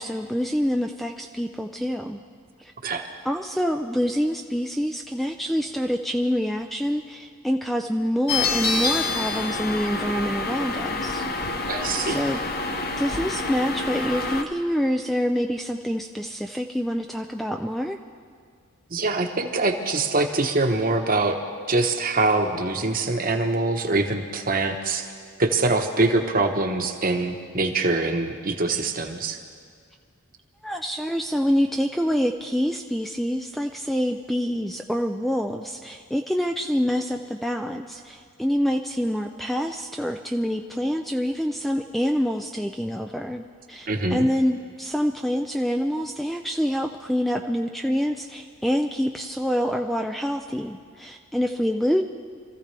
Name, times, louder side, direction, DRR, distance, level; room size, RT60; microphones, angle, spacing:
voice 1, 0.0-2.2 2.6-2.7 3.2-11.3 12.0-12.4 13.0-18.0 30.6-52.0, equal, ahead, 3 dB, 0.3 m, -26 dB
sound 1, 8.3-14.4, left 3 dB, 45° left, 0.9 m, -27 dB
voice 2, 11.7-12.2 18.9-21.4 21.7-25.1 25.4-29.4 43.9-44.2, right 2 dB, 40° right, 4 dB, 1.1 m, -24 dB
25.5 x 14.5 x 3.4 m, 2.1 s
head